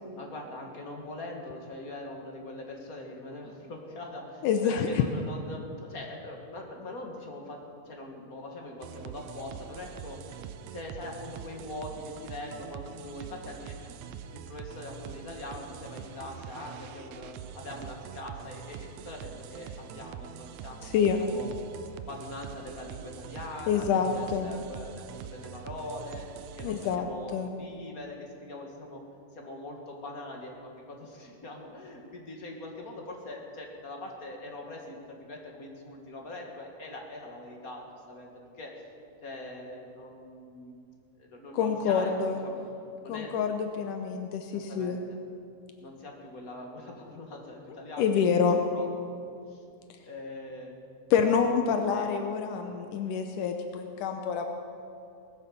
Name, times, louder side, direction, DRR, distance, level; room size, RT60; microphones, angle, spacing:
voice 1, 0.1-10.4 10.7-13.9 14.3-21.5 22.1-26.3 26.6-29.0 29.3-38.8 39.2-40.8 41.2-42.1 42.4-42.7 43.0-43.3 44.7-45.0 45.8-48.1 48.7-48.9 49.5-49.6 50.0-50.7 51.9-52.1, left 2 dB, 40° left, 1 dB, 1.4 m, -42 dB
voice 2, 4.4-5.1 20.8-21.2 23.7-24.5 26.6-27.1 27.3-27.5 41.5-42.4 43.1-45.0 48.0-48.6 51.1-54.5, left 7 dB, 80° left, 5 dB, 2.3 m, -27 dB
sound 1, 8.8-27.0, right 8 dB, 75° right, 1.7 m, -44 dB
19.5 x 9.8 x 6.9 m, 2.5 s
omnidirectional pair, 3.8 m